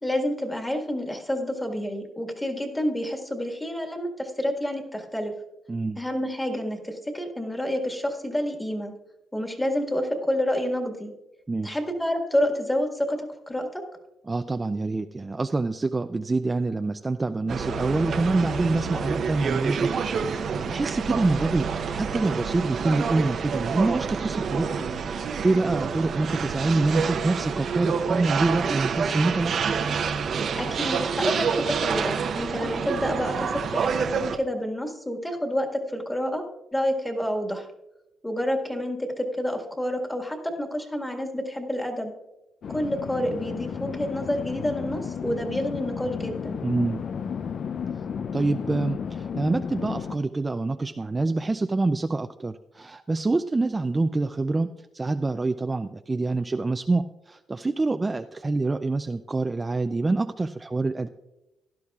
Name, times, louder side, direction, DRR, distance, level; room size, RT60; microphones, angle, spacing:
voice 1, 0.0-5.3 6.0-8.9 9.3-11.1 11.6-13.8 30.6-36.4 36.7-37.7 38.2-42.1 42.7-46.6, equal, 10° left, 3 dB, 1.8 m, -28 dB
voice 2, 5.7-6.0 11.5-11.8 14.3-19.9 20.3-29.7 46.6-47.0 48.3-61.1, right 3 dB, 20° right, 8 dB, 0.4 m, -26 dB
sound 1, 17.5-34.4, right 6 dB, 60° right, 0.8 m, -28 dB
sound 2, 42.6-50.2, left 7 dB, 55° left, 0.5 m, -33 dB
16.5 x 11.5 x 2.4 m, 0.98 s
cardioid pair, 90°, 0 cm